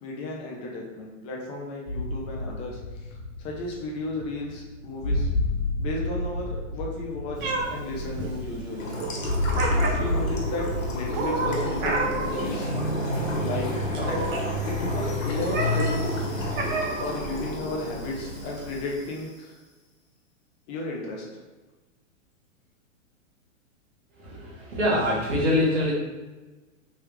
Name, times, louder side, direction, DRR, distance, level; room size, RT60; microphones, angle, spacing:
voice 1, 0.0-5.3 5.8-8.9 9.7-12.7 13.3-13.7 14.0-14.2 14.7-16.2 17.0-19.6 20.7-21.3, left 2 dB, 15° left, -1 dB, 0.3 m, -34 dB
sound 1, 1.9-11.3, left 1 dB, 50° left, 1.1 m, -30 dB
Meow, 7.4-19.0, right 2 dB, 40° right, 0.7 m, -32 dB
sound 2, 8.8-19.2, left 1 dB, 80° left, 1.1 m, -31 dB
voice 2, 24.1-25.9, left 1 dB, 60° right, -6 dB, 1.5 m, -24 dB
3.5 x 3.2 x 3.0 m, 1.2 s
hypercardioid pair, 120°, 39 cm